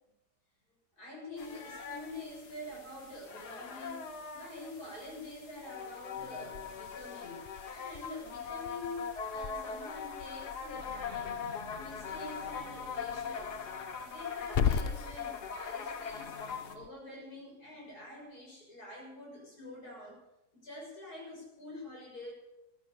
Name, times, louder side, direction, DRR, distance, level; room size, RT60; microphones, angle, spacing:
voice 1, 0.9-11.4 11.7-13.6 14.0-20.2 20.5-22.3, left 1 dB, 70° left, -3 dB, 7.0 m, -46 dB
sound 1, 1.4-16.7, left 6 dB, 90° left, 2.0 m, -41 dB
Growling / Hiss, 6.2-16.9, left 7 dB, 55° left, 0.7 m, -39 dB
sound 2, 11.0-14.0, right 1 dB, 10° left, 5.8 m, -59 dB
15.5 x 12.5 x 6.9 m, 0.90 s
omnidirectional pair, 1.7 m